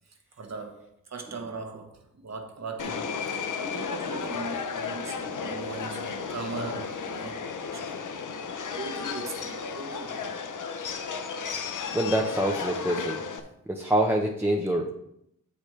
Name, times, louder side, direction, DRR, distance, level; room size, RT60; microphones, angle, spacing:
voice 1, 0.1-8.0 8.7-10.4, right 4 dB, 50° right, 1.5 m, -40 dB
Subway metro underground, 2.8-13.4, left 5 dB, 65° left, 0.9 m, -34 dB
voice 2, 11.9-13.2 13.7-14.9, right 1 dB, 5° right, 1.0 m, -25 dB
8.5 x 7.4 x 3.3 m
cardioid pair, 70°, 33 cm